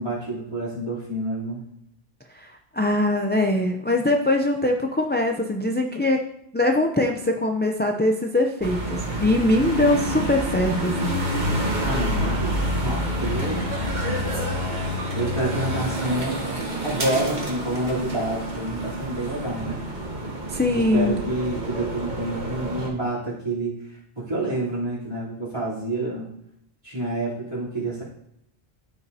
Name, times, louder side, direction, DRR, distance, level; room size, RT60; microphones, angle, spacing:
voice 1, 0.0-1.6 11.8-13.7 15.1-16.5 16.8-19.9 20.7-26.3 26.8-28.0, right 2 dB, 30° right, -9 dB, 3.6 m, -28 dB
voice 2, 2.7-6.2 6.5-11.2 20.5-21.2, left 2 dB, 15° left, 1 dB, 0.4 m, -22 dB
sound 1, 8.6-22.9, equal, 45° right, 1.5 m, -28 dB
13.5 x 5.7 x 2.8 m, 0.73 s
omnidirectional pair, 1.1 m